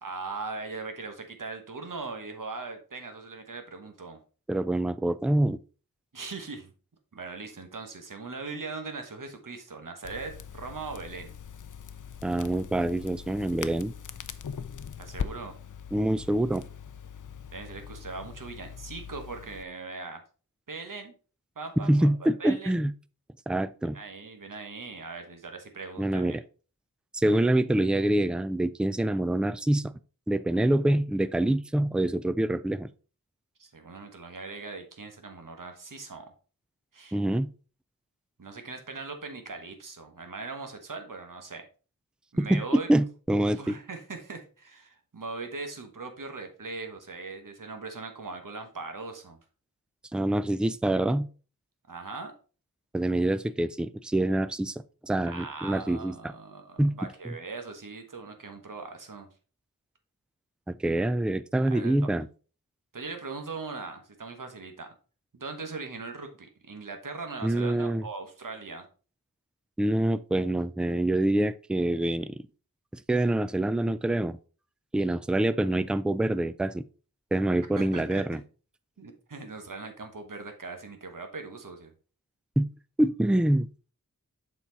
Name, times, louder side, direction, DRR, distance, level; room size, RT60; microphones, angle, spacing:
voice 1, 0.0-4.2 6.1-6.7 7.1-11.3 15.0-15.6 17.5-20.2 20.7-21.1 21.6-22.8 23.9-26.4 33.6-36.3 36.9-37.2 38.4-41.7 42.3-42.9 43.5-49.4 51.9-52.3 55.2-59.3 61.7-61.9 62.9-64.9 65.3-68.9 77.8-78.4 79.0-81.9, right 3 dB, 65° right, 1.3 m, -40 dB
voice 2, 4.5-5.6 12.2-13.9 15.9-16.6 21.8-22.9 23.5-24.0 26.0-26.4 27.1-29.9 30.3-32.9 37.1-37.5 42.4-43.7 50.1-51.3 52.9-56.3 56.8-56.9 57.2-57.3 60.7-62.3 67.4-68.0 69.8-72.4 73.1-74.4 74.9-76.8 77.3-78.4 82.6-82.7 83.0-83.7, right 1 dB, 5° right, 0.3 m, -26 dB
Crackle, 10.0-19.6, left 7 dB, 60° left, 0.5 m, -41 dB
7.1 x 4.4 x 4.0 m
wide cardioid pair, 65°, 35 cm